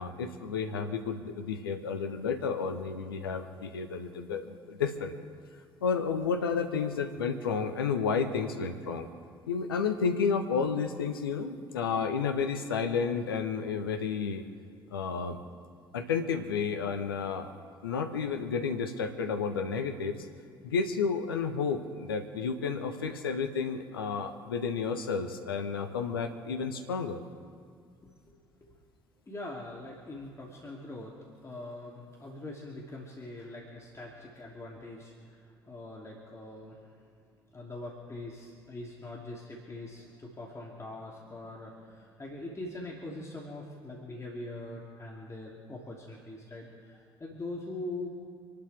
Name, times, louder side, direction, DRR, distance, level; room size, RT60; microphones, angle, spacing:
voice 1, 0.0-5.1 5.8-9.1 9.5-14.4 14.9-15.4 15.9-17.5 17.8-20.2 20.6-27.2, left 5 dB, 75° left, 7 dB, 1.2 m, -31 dB
voice 2, 28.0-28.7 29.3-31.1 31.4-37.0 37.5-48.1, left 2 dB, 25° left, -3 dB, 2.9 m, -43 dB
28.0 x 11.5 x 3.5 m, 2.3 s
figure-of-eight pair, 50°, 12 cm